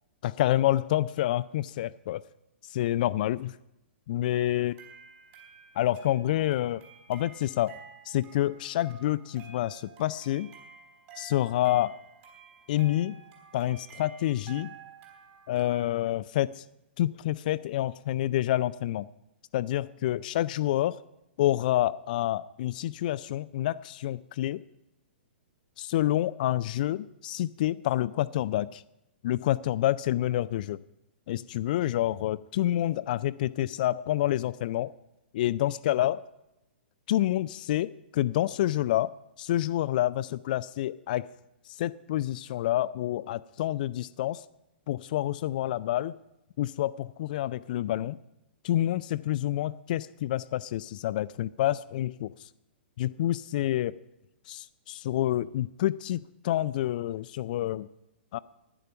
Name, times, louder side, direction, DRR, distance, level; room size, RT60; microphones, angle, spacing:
voice 1, 0.2-2.2 2.7-3.6 4.1-4.7 5.8-6.8 7.1-7.8 8.1-10.5 11.2-12.0 12.7-13.2 13.5-14.7 15.5-16.6 17.0-19.1 19.5-21.0 21.4-24.6 25.8-28.8 29.2-30.8 31.3-34.9 35.3-36.2 37.1-39.1 39.4-41.3 41.7-44.4 44.9-46.1 46.6-48.2 48.6-52.3 53.0-54.0 54.5-57.9 58.3-58.4, left 13 dB, 50° left, 15 dB, 0.3 m, -28 dB
sound 1, 4.3-16.0, right 6 dB, 40° right, 4.0 m, -52 dB
11.0 x 10.0 x 6.8 m, 0.90 s
figure-of-eight pair, 115°, 6 cm